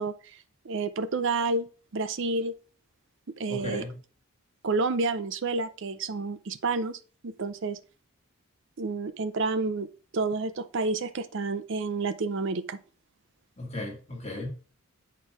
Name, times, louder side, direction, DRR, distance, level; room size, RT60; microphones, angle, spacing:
voice 1, 0.0-2.5 3.4-3.8 4.6-7.8 8.8-9.9 10.1-12.8, right 3 dB, 55° right, 0.5 m, -30 dB
voice 2, 3.5-4.0 13.6-14.5, left 1 dB, 30° left, 2.0 m, -35 dB
8.3 x 4.5 x 4.8 m
head